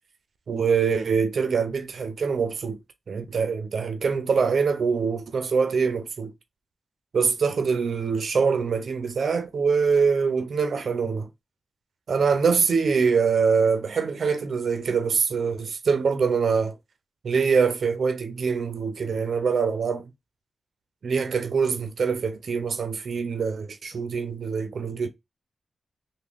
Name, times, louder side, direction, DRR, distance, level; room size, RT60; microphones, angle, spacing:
voice 1, 0.5-2.8 3.1-6.3 7.1-11.3 12.1-16.8 17.2-20.1 21.0-25.1, right 5 dB, 70° right, 0.5 m, -24 dB
3.5 x 2.1 x 3.4 m
cardioid pair, 70°, 0 cm